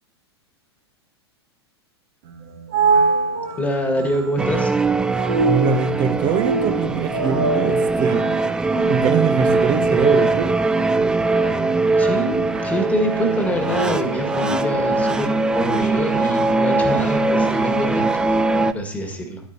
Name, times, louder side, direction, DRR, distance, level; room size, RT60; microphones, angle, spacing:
sound 1, 2.3-15.1, right 3 dB, 55° right, 1.7 m, -26 dB
voice 1, 3.6-4.7 12.0-18.4 18.7-19.4, equal, 10° left, 5 dB, 1.8 m, -25 dB
sound 2, 4.4-18.7, right 3 dB, 5° right, 0.3 m, -21 dB
voice 2, 5.5-8.5 8.9-10.5, right 7 dB, 35° right, 10 dB, 1.0 m, -23 dB
12.0 x 9.3 x 2.9 m, 0.64 s
figure-of-eight pair, 100°, 14 cm